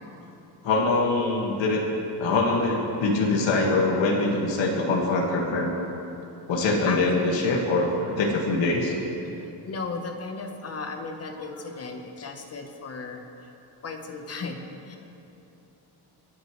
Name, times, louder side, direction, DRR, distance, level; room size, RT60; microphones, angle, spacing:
voice 1, 0.6-1.8 2.2-5.7 6.5-8.9, left 3 dB, 85° left, -2 dB, 1.9 m, -23 dB
voice 2, 6.9-7.5 9.2-13.5 13.8-15.0, left 4 dB, 35° left, 5 dB, 1.1 m, -36 dB
27.0 x 9.5 x 3.2 m, 2.9 s
cardioid pair, 170°, 44 cm